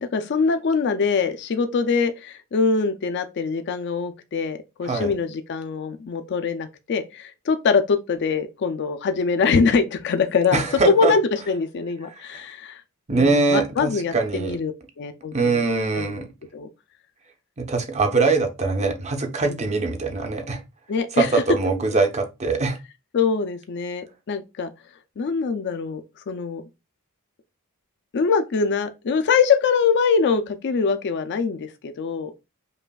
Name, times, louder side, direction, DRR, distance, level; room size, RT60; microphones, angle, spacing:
voice 1, 0.0-12.8 13.1-16.2 16.5-16.7 19.4-19.6 20.9-21.4 23.1-24.7 25.2-26.6 28.1-32.3, left 5 dB, 50° left, 0.4 m, -23 dB
voice 2, 10.5-11.1 12.3-12.4 13.1-14.6 15.3-16.2 17.6-20.6 21.1-22.8, right 3 dB, 30° right, 0.7 m, -22 dB
5.3 x 2.5 x 2.3 m
head